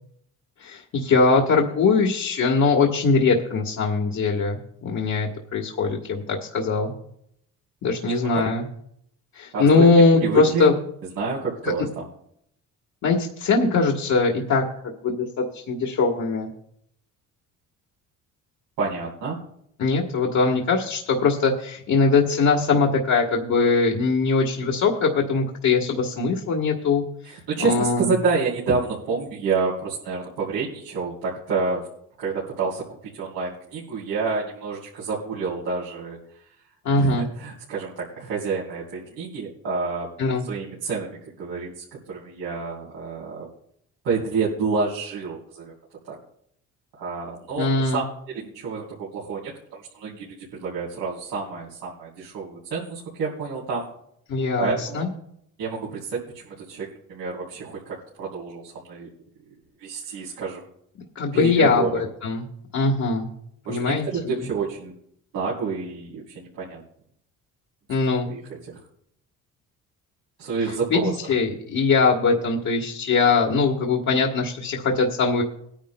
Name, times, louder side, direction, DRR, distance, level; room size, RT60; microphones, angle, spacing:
voice 1, 0.6-6.9 7.8-8.6 9.3-10.7 11.6-11.7 13.0-16.5 19.8-28.1 36.8-37.3 40.2-40.4 47.6-48.0 54.3-55.1 61.1-62.5 62.7-63.3 63.7-64.4 67.9-68.3 70.9-75.4, left 4 dB, 55° left, -1 dB, 1.4 m, -21 dB
voice 2, 9.5-9.9 10.2-10.7 11.2-12.0 18.8-19.4 27.2-31.9 32.2-36.4 36.9-40.1 40.4-43.5 44.0-45.7 46.0-46.2 47.0-53.9 54.6-55.1 55.6-59.1 59.8-60.7 61.3-62.0 63.6-64.9 65.3-66.8 68.2-68.4 68.7-68.8 70.4-71.1, right 4 dB, 85° right, -6 dB, 3.4 m, -28 dB
21.0 x 10.0 x 2.2 m, 0.72 s
cardioid pair, 100°, 34 cm